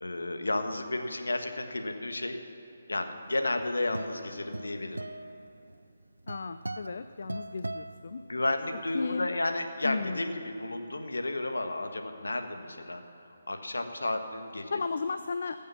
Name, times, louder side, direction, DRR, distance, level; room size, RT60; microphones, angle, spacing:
voice 1, 0.0-2.4 2.9-5.1 8.3-13.0 13.5-14.7, left 2 dB, 80° left, 6 dB, 1.4 m, -32 dB
sound 1, 3.3-8.8, right 2 dB, 85° right, 0.5 m, -41 dB
voice 2, 6.3-8.2 8.9-9.3 9.8-10.2 14.7-15.6, left 4 dB, 60° left, 10 dB, 0.5 m, -34 dB
21.0 x 7.4 x 6.0 m, 3.0 s
figure-of-eight pair, 145°, 0 cm